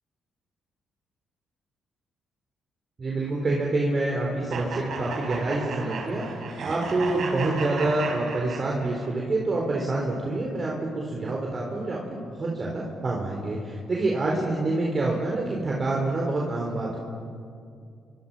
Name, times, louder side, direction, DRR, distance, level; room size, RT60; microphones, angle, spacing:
voice 1, 3.0-6.3 6.6-17.0, right 2 dB, 35° right, -2 dB, 4.3 m, -27 dB
sound 1, 4.5-9.1, right 4 dB, 65° right, 5.2 m, -34 dB
29.5 x 25.0 x 5.8 m, 2.4 s
cardioid pair, 90°, 0 cm